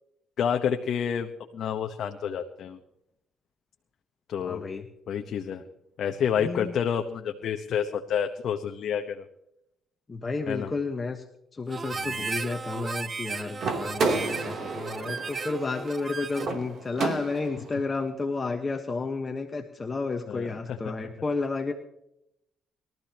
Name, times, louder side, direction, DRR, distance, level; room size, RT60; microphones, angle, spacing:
voice 1, 0.4-2.8 4.3-4.6 5.1-5.6 6.0-9.2 10.5-10.7 11.9-12.3 14.1-14.4 20.3-20.9, left 8 dB, 60° left, 5 dB, 1.0 m, -29 dB
voice 2, 4.4-4.8 6.4-6.7 10.1-11.2 11.5-21.7, left 3 dB, 25° left, 4 dB, 1.3 m, -32 dB
Harmonica, 11.7-16.6, right 4 dB, 30° right, 0.5 m, -35 dB
sound 1, 13.6-17.7, right 3 dB, 55° right, 3.1 m, -31 dB
23.0 x 13.5 x 3.0 m, 0.81 s
cardioid pair, 105°, 0 cm